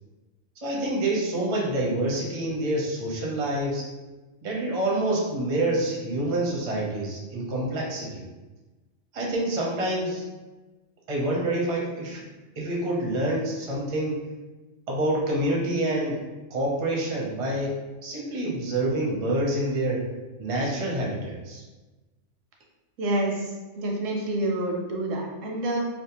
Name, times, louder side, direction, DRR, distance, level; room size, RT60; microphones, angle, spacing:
voice 1, 0.6-3.9 4.4-8.2 9.1-10.2 11.1-12.2 12.6-14.2 14.9-16.2 16.5-17.7 18.0-20.1 20.4-21.6, right 1 dB, 45° right, -3 dB, 0.5 m, -27 dB
voice 2, 23.0-25.9, right 1 dB, 80° right, 0 dB, 0.9 m, -28 dB
2.6 x 2.1 x 2.8 m, 1.2 s
omnidirectional pair, 1.3 m